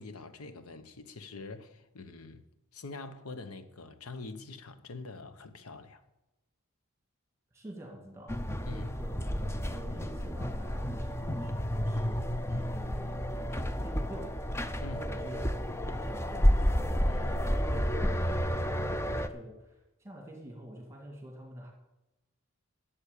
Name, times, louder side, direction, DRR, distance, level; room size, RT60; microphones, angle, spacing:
voice 1, 0.0-2.5 2.7-6.0 8.6-8.9 14.8-15.1 17.1-17.3, left 3 dB, 85° left, 1.0 m, -45 dB
voice 2, 7.5-12.2 12.5-14.4 14.9-21.7, right 1 dB, 15° right, 2.2 m, -48 dB
sound 1, 8.3-19.3, equal, 10° left, 0.5 m, -31 dB
12.0 x 7.3 x 8.5 m
head